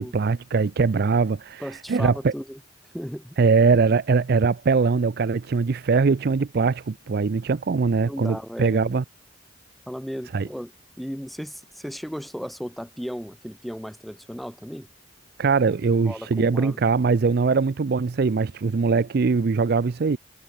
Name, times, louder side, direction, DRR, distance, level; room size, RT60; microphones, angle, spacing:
voice 1, 0.0-2.3 3.4-9.0 10.3-10.5 15.4-20.2, right 4 dB, 55° right, 0.5 m, -22 dB
voice 2, 1.6-2.6 2.9-3.4 8.0-8.9 9.9-10.7 11.0-14.9 15.9-16.8, equal, ahead, 0.9 m, -35 dB
head